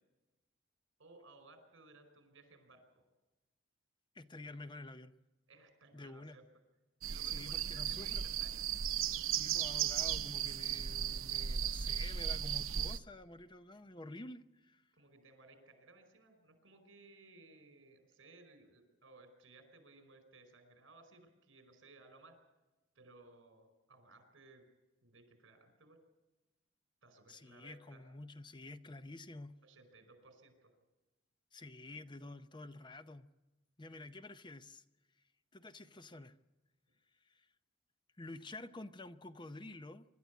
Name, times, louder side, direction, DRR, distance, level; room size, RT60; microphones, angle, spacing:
voice 1, 1.0-3.0 5.5-6.4 7.0-8.6 15.0-22.4 22.9-24.6 25.0-26.0 27.0-28.1 29.6-30.7, right 3 dB, 70° right, 8 dB, 5.0 m, -60 dB
voice 2, 4.1-5.1 5.9-6.4 7.2-8.2 9.3-14.8 27.3-29.6 31.5-33.3 33.8-34.8 35.5-36.3 37.2-37.5 38.2-40.0, left 2 dB, 25° left, 11 dB, 0.7 m, -49 dB
sound 1, 7.0-13.0, right 9 dB, 85° right, 0.8 m, -36 dB
25.0 x 12.5 x 8.3 m, 1.1 s
head